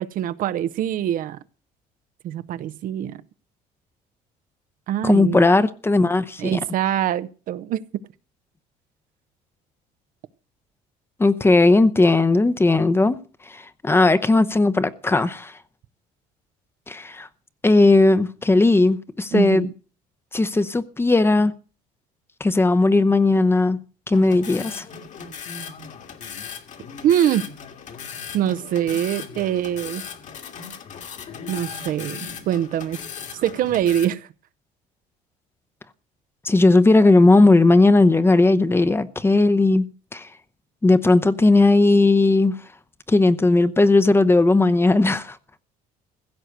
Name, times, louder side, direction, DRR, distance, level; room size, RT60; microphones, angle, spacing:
voice 1, 0.0-1.4 2.2-3.2 4.9-5.5 6.4-7.9 19.3-19.7 27.0-27.4 28.3-30.0 31.5-33.0 33.4-34.3, right 11 dB, 60° right, 0.7 m, -24 dB
voice 2, 5.0-6.6 11.2-13.2 13.5-15.5 16.9-17.3 17.6-19.7 20.3-21.5 22.4-23.8 24.1-24.8 36.4-39.8 40.1-40.3 40.8-42.5 43.1-45.4, left 2 dB, 15° left, 0.8 m, -17 dB
sound 1, 24.1-34.0, left 6 dB, 50° left, 2.0 m, -37 dB
16.0 x 6.4 x 7.9 m
cardioid pair, 110°, 16 cm